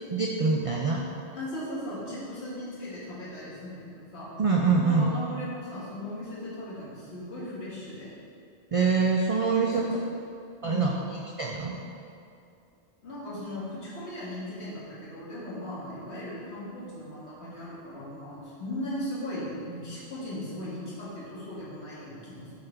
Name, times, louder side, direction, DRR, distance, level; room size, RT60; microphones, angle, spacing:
voice 1, 0.1-1.1 4.4-5.1 8.7-9.9 10.6-10.9 11.4-11.7, right 4 dB, 65° right, 0 dB, 0.3 m, -24 dB
voice 2, 1.3-4.3 4.8-8.1 9.5-10.0 10.6-11.0 13.0-22.5, left 1 dB, 75° left, -8 dB, 1.9 m, -38 dB
6.5 x 4.0 x 4.3 m, 2.5 s
omnidirectional pair, 1.1 m